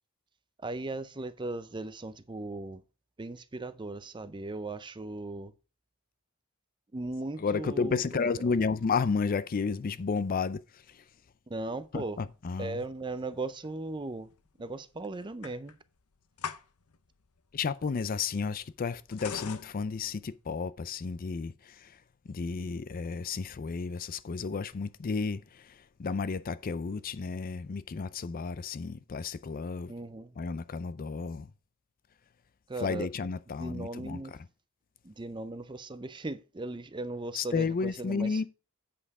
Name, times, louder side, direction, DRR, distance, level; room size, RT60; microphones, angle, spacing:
voice 1, 0.6-2.8 3.2-5.5 6.9-8.3 11.5-12.2 12.6-14.3 14.6-15.8 29.9-30.4 32.7-33.1 33.6-34.3 35.0-38.4, right 2 dB, 20° right, 0.5 m, -38 dB
voice 2, 7.4-11.1 11.9-12.8 17.5-29.9 30.4-31.5 32.8-34.4 37.3-38.5, left 5 dB, 40° left, 0.4 m, -32 dB
sound 1, 11.7-20.6, left 6 dB, 90° left, 0.8 m, -45 dB
8.5 x 5.6 x 4.8 m
head